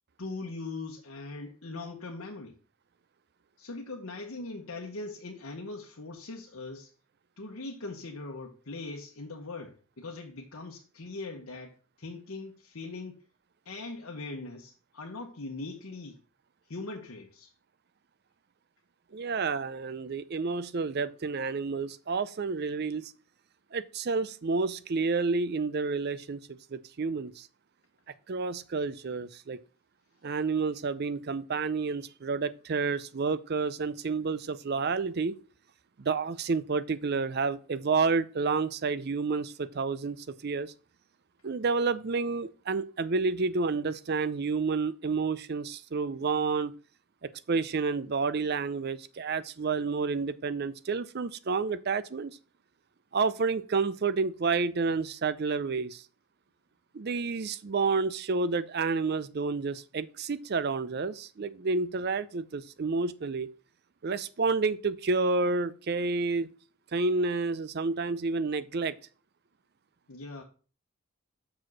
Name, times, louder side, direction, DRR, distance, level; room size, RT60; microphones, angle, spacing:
voice 1, 0.2-2.6 3.6-6.9 7.4-13.2 13.6-16.2 16.7-17.5 70.1-70.4, left 3 dB, 70° left, 1.0 m, -41 dB
voice 2, 19.1-23.1 23.7-26.4 26.7-27.5 28.3-29.6 30.2-35.4 36.0-40.2 40.4-40.7 41.4-46.7 47.5-52.4 53.1-56.0 56.9-63.5 64.0-66.5 66.9-68.9, right 4 dB, 45° right, 0.5 m, -30 dB
6.2 x 4.8 x 6.1 m
head